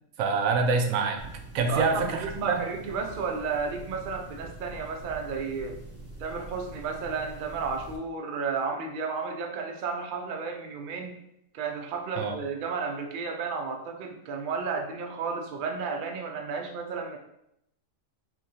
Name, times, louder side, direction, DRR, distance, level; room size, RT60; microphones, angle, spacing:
voice 1, 0.2-1.2 1.5-2.6 12.2-12.4, right 4 dB, 85° right, 4 dB, 1.0 m, -25 dB
sound 1, 1.2-8.0, right 2 dB, 15° right, 0.5 m, -44 dB
voice 2, 1.6-5.8 6.2-11.2 11.5-17.2, right 5 dB, 65° right, 3 dB, 0.5 m, -33 dB
3.7 x 2.9 x 2.8 m, 0.80 s
omnidirectional pair, 1.4 m